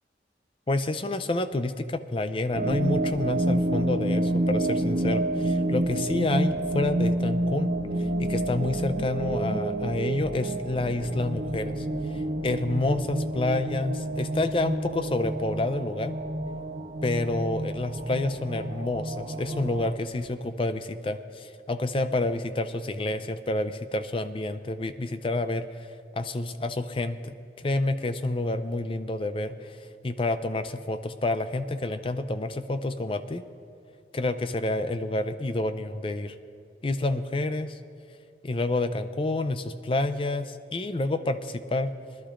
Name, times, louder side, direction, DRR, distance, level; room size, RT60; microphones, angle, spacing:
voice 1, 0.7-7.7 8.0-11.9 12.1-16.1 17.0-25.8 26.1-29.8 30.0-33.4 34.1-36.3 36.8-37.8 38.4-41.9, left 2 dB, 30° left, 11 dB, 0.4 m, -29 dB
sound 1, 2.5-19.9, right 1 dB, 70° right, 1.3 m, -29 dB
23.5 x 11.5 x 2.5 m, 2.3 s
head